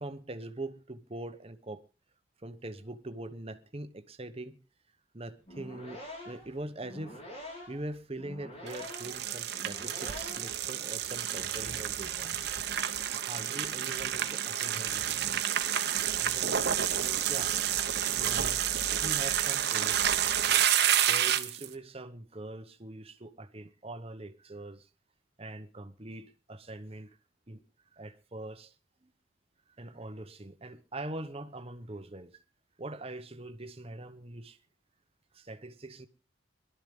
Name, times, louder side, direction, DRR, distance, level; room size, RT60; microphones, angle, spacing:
voice 1, 0.0-1.8 2.4-4.6 5.1-7.2 7.7-12.3 13.2-15.3 16.0-16.6 17.0-17.6 18.1-20.4 21.1-24.9 25.4-27.2 27.5-27.6 27.9-28.7 29.0-29.1 29.8-32.3 32.8-34.6 35.3-36.1, right 2 dB, 30° right, 1.0 m, -43 dB
sound 1, 5.4-10.7, left 1 dB, 30° left, 4.4 m, -46 dB
sound 2, 8.7-21.7, right 10 dB, 50° right, 1.0 m, -29 dB
21.5 x 12.5 x 3.7 m
head